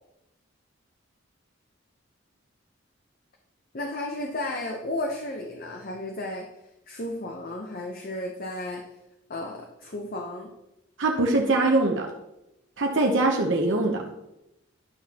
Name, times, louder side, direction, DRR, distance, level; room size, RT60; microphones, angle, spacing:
voice 1, 3.7-6.5 6.9-8.8 9.3-10.5, left 1 dB, 50° left, 2 dB, 0.8 m, -33 dB
voice 2, 11.0-12.1 12.8-14.0, right 2 dB, 70° right, 0 dB, 0.8 m, -22 dB
11.0 x 6.2 x 2.9 m, 0.89 s
head